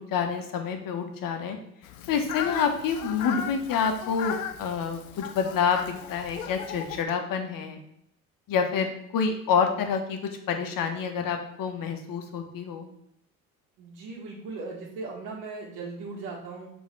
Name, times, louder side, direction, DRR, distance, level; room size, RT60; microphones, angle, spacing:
voice 1, 0.0-1.6 2.1-7.8 8.5-10.2 10.5-12.9, left 6 dB, 50° left, 4 dB, 1.6 m, -28 dB
Fowl, 1.8-7.0, left 8 dB, 80° left, 0.7 m, -37 dB
voice 2, 13.8-16.7, right 3 dB, 60° right, -6 dB, 2.0 m, -38 dB
7.1 x 4.2 x 5.6 m, 0.74 s
hypercardioid pair, 60°, 42 cm